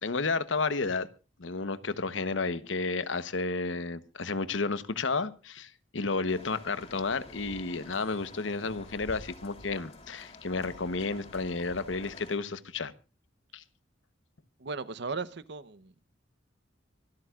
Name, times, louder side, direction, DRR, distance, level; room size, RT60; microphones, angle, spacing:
voice 1, 0.0-1.1 1.4-12.9 13.5-13.6, left 3 dB, 90° left, 1.1 m, -32 dB
sound 1, 6.3-12.4, left 1 dB, 35° left, 5.3 m, -49 dB
voice 2, 14.6-15.9, right 4 dB, 65° right, 0.9 m, -36 dB
25.0 x 12.5 x 2.5 m
head